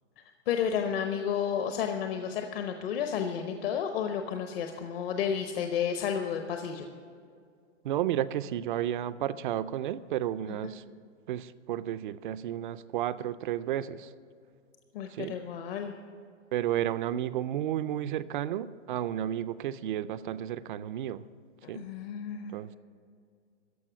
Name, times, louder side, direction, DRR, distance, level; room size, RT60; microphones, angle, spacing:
voice 1, 0.5-6.9 14.9-15.9 21.6-22.5, left 8 dB, 55° left, 5 dB, 0.9 m, -31 dB
voice 2, 7.8-10.8 11.3-14.1 15.1-15.4 16.5-21.3 21.7-21.9 22.5-22.8, right 11 dB, 45° right, 15 dB, 0.4 m, -32 dB
14.0 x 5.4 x 8.5 m, 2.2 s
hypercardioid pair, 140°, 36 cm